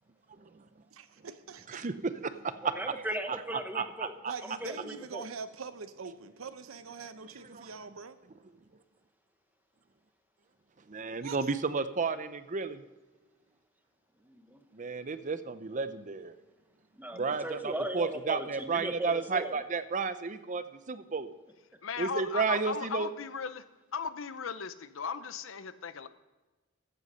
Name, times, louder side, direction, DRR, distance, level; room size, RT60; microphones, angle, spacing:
voice 1, 0.9-1.9 4.3-8.2 11.2-11.5, right 5 dB, 85° right, 11 dB, 0.8 m, -43 dB
voice 2, 2.6-4.1 4.6-5.3 14.2-14.6 17.0-19.5, right 1 dB, 10° right, 7 dB, 0.8 m, -38 dB
voice 3, 3.7-4.3 7.5-7.7 10.9-12.8 14.7-16.3 17.1-21.3 22.0-23.1, right 4 dB, 40° right, 12 dB, 0.6 m, -32 dB
voice 4, 21.8-23.6 23.9-26.1, left 6 dB, 70° left, 13 dB, 0.7 m, -37 dB
14.5 x 8.0 x 5.4 m, 1.2 s
head